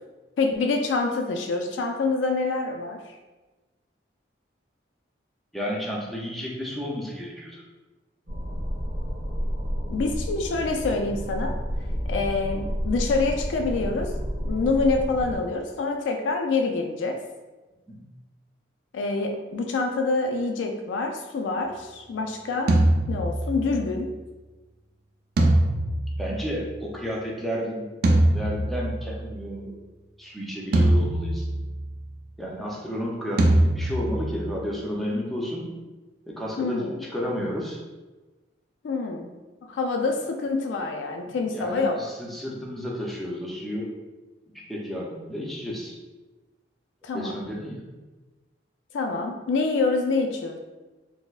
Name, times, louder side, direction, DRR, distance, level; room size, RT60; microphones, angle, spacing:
voice 1, 0.4-3.0 9.9-11.6 12.1-14.1 14.4-17.2 18.9-22.8 23.1-24.1 36.6-37.0 38.8-39.3 39.6-42.0 47.0-47.4 48.9-50.6, left 3 dB, 85° left, 4 dB, 0.3 m, -26 dB
voice 2, 5.5-7.6 17.9-18.0 26.2-29.8 30.2-31.5 32.4-35.7 36.3-37.8 41.3-43.9 44.7-45.9 47.1-47.9, equal, ahead, -4 dB, 0.5 m, -32 dB
sound 1, 8.3-15.4, equal, 75° right, 1.4 m, -30 dB
sound 2, 22.7-23.9 25.4-26.9 28.0-29.2 30.7-31.9 33.4-34.5, right 1 dB, 55° right, 0.4 m, -22 dB
4.2 x 2.0 x 2.4 m, 1.2 s
head